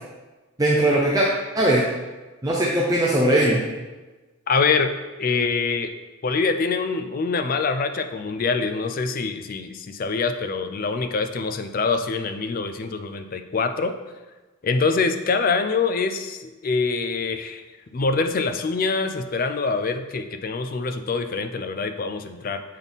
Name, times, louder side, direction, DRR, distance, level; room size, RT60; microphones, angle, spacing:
voice 1, 0.6-1.3 1.5-1.8 2.4-3.6, right 1 dB, 15° right, -4 dB, 0.6 m, -19 dB
voice 2, 4.5-4.9 5.2-5.9 6.2-13.9 14.6-17.6 17.9-22.6, left 4 dB, 40° left, 7 dB, 0.4 m, -25 dB
7.4 x 4.1 x 3.5 m, 1.2 s
head